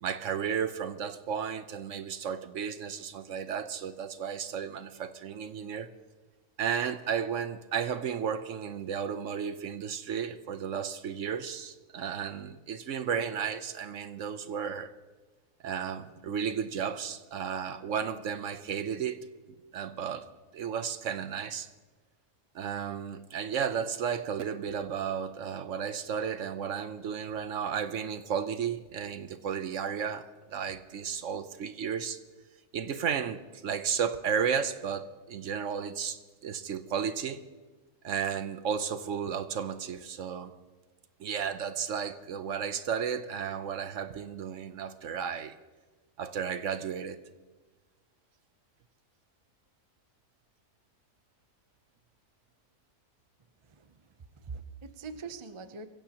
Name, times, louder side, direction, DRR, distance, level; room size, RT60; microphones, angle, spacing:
voice 1, 0.0-5.9 6.6-14.9 15.6-19.3 19.7-20.3 20.5-21.7 22.5-32.2 32.7-37.4 38.0-40.5 41.2-45.6 46.2-47.2, right 7 dB, 60° right, 11 dB, 1.0 m, -33 dB
voice 2, 53.7-54.1 54.3-55.9, right 4 dB, 40° right, 9 dB, 0.4 m, -43 dB
24.5 x 16.0 x 2.9 m, 1.2 s
omnidirectional pair, 1.6 m